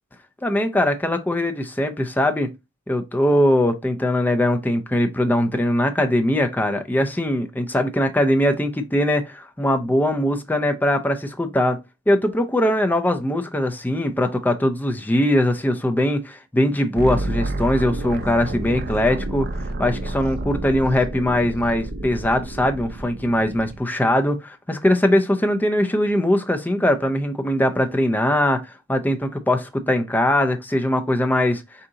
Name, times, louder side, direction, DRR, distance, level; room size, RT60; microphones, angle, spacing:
voice 1, 0.4-2.5 2.9-11.8 12.1-19.5 19.8-31.6, left 1 dB, 10° left, 0.4 m, -21 dB
sound 1, 17.0-23.8, right 2 dB, 50° right, 0.5 m, -29 dB
3.8 x 2.8 x 3.6 m
head